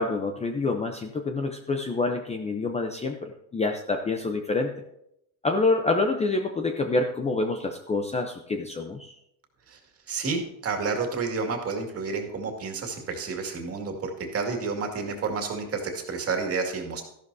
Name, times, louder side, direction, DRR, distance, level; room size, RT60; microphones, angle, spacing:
voice 1, 0.0-4.8 5.4-9.2, left 3 dB, 15° left, 5 dB, 0.6 m, -27 dB
voice 2, 10.1-17.0, right 4 dB, 35° right, 3 dB, 2.2 m, -30 dB
13.0 x 11.5 x 2.7 m, 0.79 s
cardioid pair, 135°, 40 cm